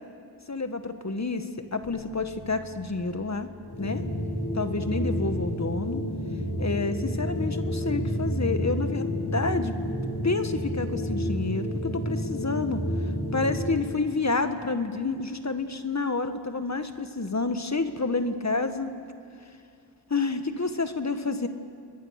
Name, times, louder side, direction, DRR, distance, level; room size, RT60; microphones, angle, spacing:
voice 1, 0.5-3.5 3.8-4.0 4.5-6.0 6.6-9.7 10.2-12.8 13.3-18.9 20.1-21.5, left 3 dB, 40° left, 8 dB, 1.6 m, -29 dB
Bass guitar, 1.8-8.1, left 2 dB, 80° left, 5.3 m, -51 dB
sound 1, 3.6-13.9, equal, 65° left, 4.2 m, -30 dB
28.0 x 21.5 x 6.6 m, 2.5 s
cardioid pair, 45°, 41 cm